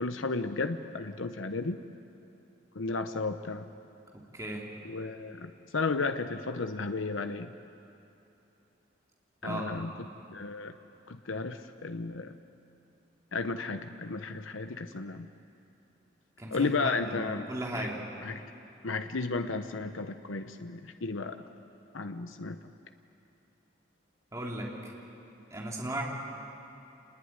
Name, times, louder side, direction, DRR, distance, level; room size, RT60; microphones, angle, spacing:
voice 1, 0.0-1.8 2.7-3.6 4.8-7.5 9.4-9.9 10.3-10.7 11.1-12.3 13.3-15.3 16.5-17.5 17.7-17.9 18.2-18.4 18.8-21.4 21.9-22.6, left 3 dB, 90° left, 8 dB, 0.9 m, -33 dB
voice 2, 4.3-4.6 9.4-10.0 16.4-18.0 24.3-24.9 25.5-26.0, right 1 dB, 15° right, -2 dB, 3.1 m, -36 dB
27.5 x 21.0 x 9.6 m, 2.9 s
head